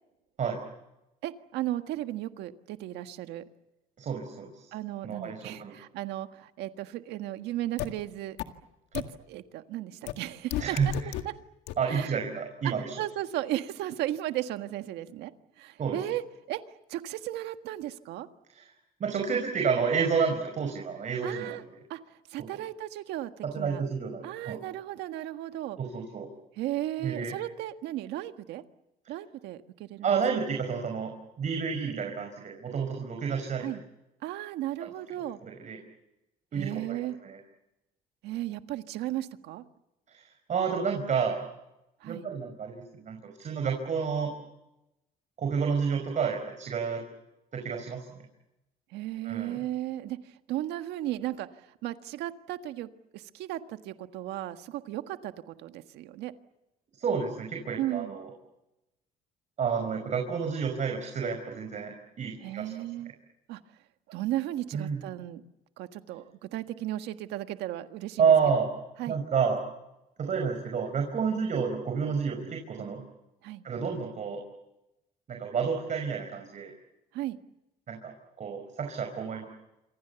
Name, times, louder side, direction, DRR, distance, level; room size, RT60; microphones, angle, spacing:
voice 1, 1.2-3.4 4.7-8.4 8.9-10.9 11.9-12.1 12.6-15.3 15.6-16.2 16.5-16.6 16.9-18.3 21.2-21.6 21.9-22.0 22.3-23.8 24.2-25.8 26.6-28.6 29.1-30.1 33.6-33.8 34.2-35.4 36.5-37.2 38.2-39.6 42.0-42.3 48.9-50.2 50.5-56.3 57.8-58.1 62.4-63.1 63.5-63.6 64.1-65.4 65.8-68.3 69.0-69.2 73.4-73.6 77.1-77.4, right 14 dB, 85° right, 8 dB, 1.6 m, -35 dB
voice 2, 4.0-4.7 5.0-5.7 10.6-11.1 11.8-13.0 15.8-16.0 18.5-18.7 19.0-21.8 22.4-22.5 23.4-24.6 25.8-26.3 27.0-27.3 30.0-33.7 34.8-34.9 35.4-35.8 36.5-37.4 40.1-41.4 42.0-44.3 45.4-47.0 47.5-48.1 49.2-49.6 57.0-58.3 59.6-62.7 64.7-65.0 68.2-68.7 69.1-69.6 70.2-73.1 73.6-74.4 75.3-76.7 77.9-79.4, right 6 dB, 45° right, 3 dB, 5.3 m, -30 dB
sound 1, 7.8-7.9 8.4-8.5 8.9-9.0 10.1-10.2 10.5-11.2 11.7-11.8, left 14 dB, 90° left, 1.9 m, -31 dB
28.0 x 26.0 x 7.0 m, 0.93 s
cardioid pair, 110°, 17 cm